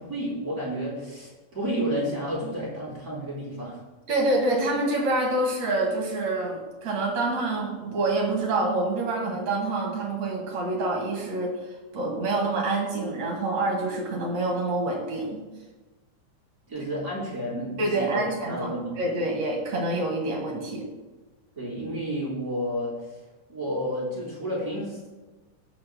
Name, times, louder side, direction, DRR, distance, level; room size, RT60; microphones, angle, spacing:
voice 1, 0.0-3.8 16.7-19.0 21.6-23.2 23.5-25.1, equal, 25° right, -5 dB, 3.4 m, -31 dB
voice 2, 4.1-11.5 11.9-15.4 17.8-18.7 19.0-20.8, right 2 dB, 55° right, 0 dB, 3.3 m, -26 dB
20.5 x 8.4 x 2.3 m, 1.2 s
omnidirectional pair, 3.8 m